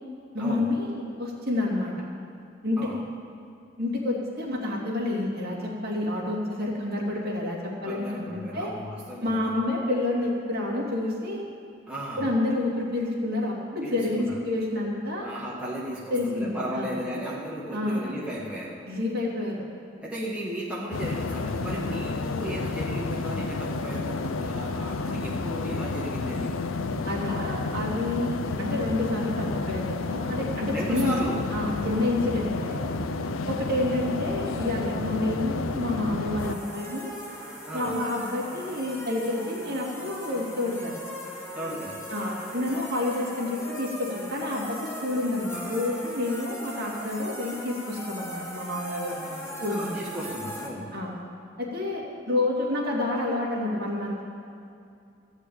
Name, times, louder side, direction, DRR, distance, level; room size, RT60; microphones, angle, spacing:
voice 1, 0.3-1.9 2.6-2.9 3.8-8.7 9.2-11.4 12.2-15.3 16.1-16.9 17.7-18.1 18.9-19.6 27.0-31.1 31.5-32.8 33.5-37.1 37.7-40.9 42.1-49.9 50.9-51.2 51.6-54.2, left 2 dB, 50° right, -4 dB, 2.7 m, -29 dB
voice 2, 7.8-9.5 11.9-12.3 13.8-14.4 15.2-18.8 20.0-26.6 30.7-31.4 37.6-38.0 41.5-42.1 48.8-49.1 49.5-51.0, equal, 5° right, -6 dB, 1.5 m, -35 dB
sound 1, 20.9-36.6, left 3 dB, 85° left, 0.6 m, -31 dB
sound 2, 36.4-50.7, equal, 15° left, 1.9 m, -39 dB
14.5 x 6.3 x 9.1 m, 2.5 s
head